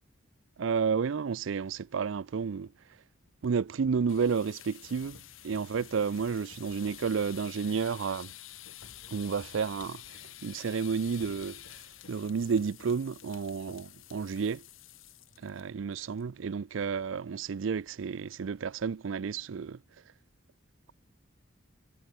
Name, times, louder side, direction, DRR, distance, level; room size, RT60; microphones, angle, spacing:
voice 1, 0.6-2.7 3.4-8.3 9.1-11.8 12.1-14.6 15.4-19.8, right 6 dB, 75° right, 0.4 m, -31 dB
sound 1, 4.0-15.6 15.9-16.2 16.5-16.6 17.0-17.4, left 11 dB, 80° left, 1.6 m, -49 dB
head